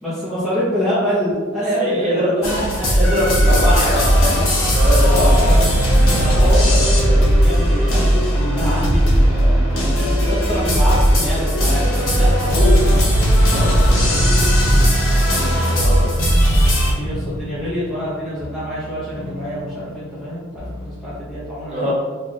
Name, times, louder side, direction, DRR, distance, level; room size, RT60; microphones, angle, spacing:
voice 1, 0.0-4.0 5.1-5.6 6.4-6.6 7.4-13.1 13.5-15.5 17.0-21.9, equal, ahead, -12 dB, 0.7 m, -26 dB
voice 2, 1.8-2.3 3.0-4.5 4.7-7.2 12.1-12.2 12.6-12.7 13.5-13.6 15.8-16.1 21.7-21.9, equal, 35° right, -7 dB, 1.0 m, -23 dB
sound 1, 2.4-16.9, equal, 70° left, 1.0 m, -16 dB
sound 2, 14.1-21.3, left 1 dB, 50° left, 0.8 m, -36 dB
3.0 x 2.4 x 3.9 m, 1.5 s
head